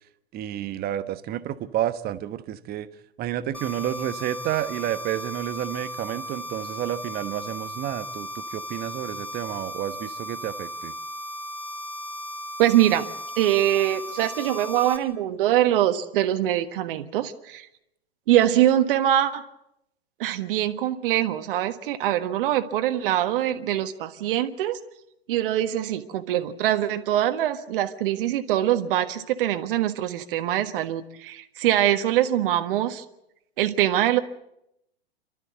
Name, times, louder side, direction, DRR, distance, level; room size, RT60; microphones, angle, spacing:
voice 1, 0.3-2.9 3.2-10.9, right 12 dB, 30° right, 13 dB, 1.1 m, -30 dB
sound 1, 3.5-15.0, equal, 5° left, 4.0 m, -36 dB
voice 2, 12.6-13.1 13.4-17.7 18.3-19.4 20.2-24.8 25.3-33.0 33.6-34.2, right 12 dB, 60° right, 8 dB, 1.5 m, -23 dB
29.0 x 13.0 x 8.1 m, 0.84 s
hypercardioid pair, 110°, 31 cm